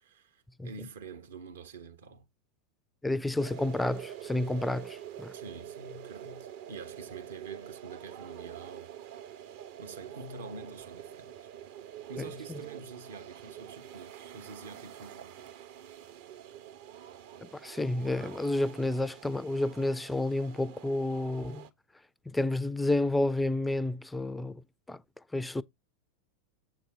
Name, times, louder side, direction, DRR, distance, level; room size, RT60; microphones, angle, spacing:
voice 1, 0.0-2.3 5.3-9.5 9.8-11.5 12.1-15.4, right 4 dB, 65° right, 1.3 m, -47 dB
voice 2, 3.0-5.3 17.6-21.7 22.3-24.6 24.9-25.0 25.3-25.6, left 2 dB, 5° left, 0.4 m, -30 dB
sound 1, 3.4-21.7, right 10 dB, 50° right, 0.8 m, -46 dB
7.6 x 4.2 x 4.5 m
figure-of-eight pair, 90°, 0 cm